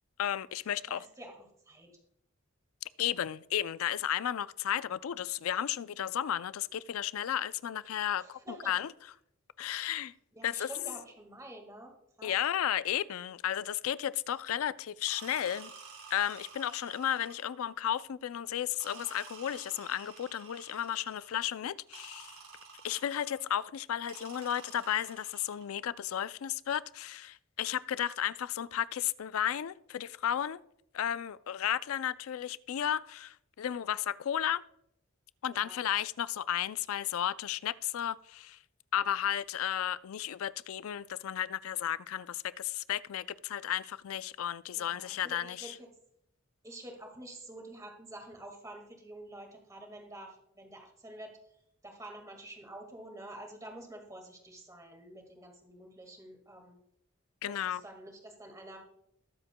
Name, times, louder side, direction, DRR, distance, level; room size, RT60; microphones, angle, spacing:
voice 1, 0.2-1.1 3.0-8.9 9.6-10.1 10.4-10.7 12.2-15.7 16.1-22.3 22.8-30.6 30.9-34.6 35.4-38.6 38.9-45.7 57.4-57.8, left 10 dB, 80° left, 0.4 m, -33 dB
voice 2, 0.7-1.9 8.2-8.9 9.6-9.9 10.3-11.9 12.2-12.3 35.5-35.9 44.7-45.9 46.6-51.4 51.8-56.8 57.5-58.8, right 1 dB, 15° right, 1.8 m, -48 dB
sound 1, 15.1-17.6 18.8-21.4 21.9-23.5 24.1-25.7, right 5 dB, 90° right, 4.0 m, -51 dB
20.0 x 7.7 x 2.2 m
head